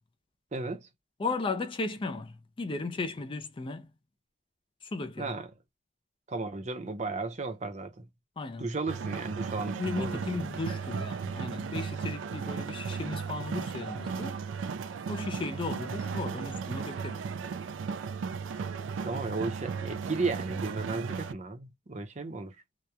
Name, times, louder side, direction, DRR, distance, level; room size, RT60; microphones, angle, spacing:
voice 1, 0.5-0.9 5.2-5.5 6.3-8.1 8.6-10.2 19.0-22.5, right 3 dB, 40° right, 0.6 m, -34 dB
voice 2, 1.2-3.9 4.8-5.3 8.4-8.7 9.8-14.4 15.1-17.2, left 3 dB, 30° left, 0.4 m, -35 dB
sound 1, 8.9-21.3, right 5 dB, 90° right, 0.3 m, -35 dB
2.8 x 2.1 x 2.3 m
head